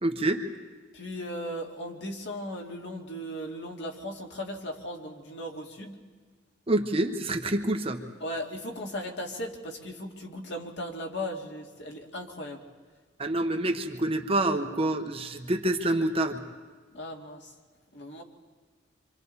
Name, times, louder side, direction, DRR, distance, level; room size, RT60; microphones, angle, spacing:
voice 1, 0.0-0.4 6.7-8.0 13.2-16.4, right 1 dB, 30° right, 4 dB, 1.1 m, -27 dB
voice 2, 0.9-6.0 8.2-12.7 16.9-17.5 17.9-18.2, equal, 65° left, 1 dB, 2.2 m, -37 dB
26.5 x 25.5 x 4.1 m, 1.4 s
head